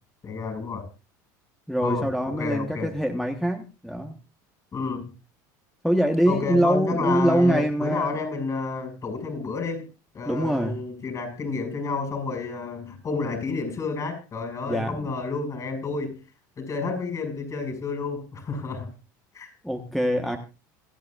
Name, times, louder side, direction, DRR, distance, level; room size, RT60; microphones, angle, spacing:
voice 1, 0.2-0.8 1.8-2.9 4.7-5.1 6.2-9.8 10.1-16.1 16.6-18.9 19.3-19.5, left 4 dB, 35° left, 6 dB, 6.3 m, -30 dB
voice 2, 1.7-4.2 5.8-8.2 10.2-10.8 14.6-15.1 19.6-20.4, equal, ahead, 5 dB, 1.2 m, -24 dB
27.0 x 9.3 x 2.5 m, 0.30 s
supercardioid pair, 100°, 10 cm